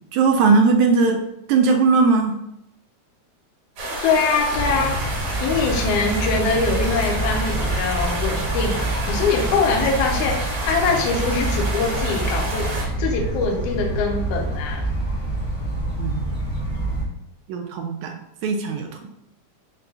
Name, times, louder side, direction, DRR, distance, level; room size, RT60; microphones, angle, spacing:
voice 1, 0.1-1.2 1.5-2.4 16.0-16.3 17.5-19.1, right 4 dB, 80° right, 3 dB, 1.8 m, -19 dB
sound 1, 3.8-12.8, right 1 dB, 55° right, 2.0 m, -29 dB
voice 2, 4.0-5.0 5.4-14.9, left 4 dB, 75° left, 1 dB, 1.5 m, -23 dB
sound 2, 4.5-17.0, right 1 dB, 20° left, 0.5 m, -26 dB
5.5 x 2.2 x 3.8 m, 0.80 s
omnidirectional pair, 3.6 m